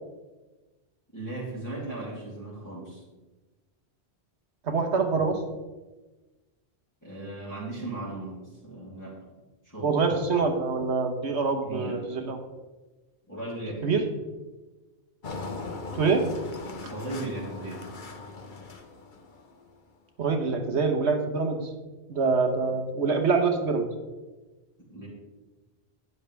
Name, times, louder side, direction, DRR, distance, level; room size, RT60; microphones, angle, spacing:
voice 1, 1.1-3.0 7.0-9.2 9.6-10.0 11.6-12.0 13.3-14.0 16.9-17.9 24.9-25.1, right 2 dB, 15° left, -9 dB, 3.3 m, -37 dB
voice 2, 4.6-5.4 9.8-12.4 13.8-14.0 16.0-16.2 20.2-21.7 22.1-23.9, right 4 dB, 85° right, 4 dB, 1.4 m, -25 dB
Engine, 15.2-19.7, left 3 dB, 50° left, 1.1 m, -39 dB
12.0 x 9.8 x 3.4 m, 1.2 s
omnidirectional pair, 1.1 m